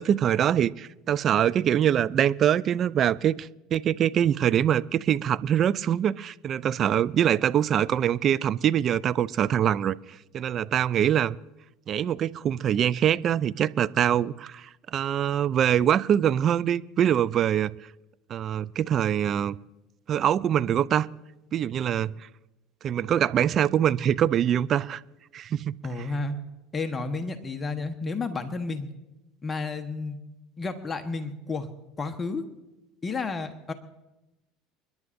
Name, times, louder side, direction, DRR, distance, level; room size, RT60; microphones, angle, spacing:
voice 1, 0.0-10.0 10.3-11.4 11.9-17.7 18.3-19.6 20.1-21.1 21.5-22.1 22.8-25.0 25.3-25.8, right 10 dB, 45° right, 0.4 m, -24 dB
voice 2, 25.8-26.4 26.7-28.9 29.4-30.2 30.6-31.7 32.0-32.4 33.0-33.7, left 3 dB, 25° left, 1.1 m, -31 dB
29.5 x 11.0 x 2.6 m
hypercardioid pair, 75°, 0 cm